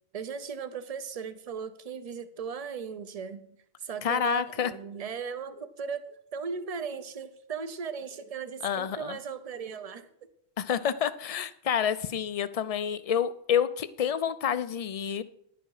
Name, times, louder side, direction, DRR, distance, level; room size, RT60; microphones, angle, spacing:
voice 1, 0.1-3.5 3.8-10.1, right 6 dB, 40° right, 11 dB, 0.7 m, -37 dB
voice 2, 4.0-4.7 8.6-9.2 10.6-15.2, left 8 dB, 50° left, 14 dB, 0.4 m, -28 dB
10.5 x 8.0 x 4.8 m, 0.70 s
omnidirectional pair, 1.1 m